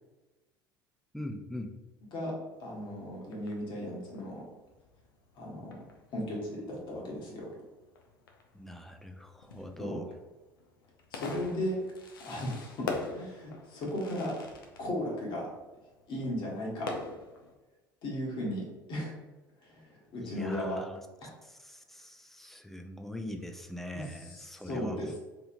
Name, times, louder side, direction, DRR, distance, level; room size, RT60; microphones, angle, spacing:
voice 1, 1.1-1.8 8.5-10.1 20.2-21.0 21.4-25.0, left 1 dB, ahead, 5 dB, 0.4 m, -42 dB
Fireworks, 2.5-17.5, left 4 dB, 80° left, 0.5 m, -45 dB
voice 2, 2.6-4.5 5.3-5.8 6.1-7.5 9.8-10.0 11.1-11.8 12.2-14.4 14.8-15.5 16.1-17.0 18.0-19.1 19.6-20.8 21.2-21.3 23.9-25.2, left 1 dB, 45° left, -3 dB, 1.3 m, -36 dB
3.4 x 2.9 x 2.6 m, 1.1 s
figure-of-eight pair, 70°, 11 cm